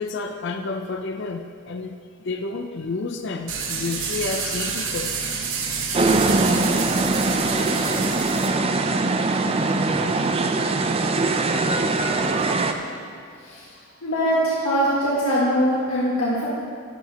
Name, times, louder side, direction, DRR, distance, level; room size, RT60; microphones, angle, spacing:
voice 1, 0.0-5.1 11.2-11.4, left 3 dB, 55° left, 5 dB, 0.5 m, -30 dB
sound 1, 3.5-8.5, right 5 dB, 65° right, 1.1 m, -28 dB
sound 2, 5.9-12.7, right 3 dB, 25° right, 0.4 m, -22 dB
voice 2, 14.0-16.5, equal, 80° left, -8 dB, 1.7 m, -22 dB
11.5 x 11.0 x 2.9 m, 2.2 s
head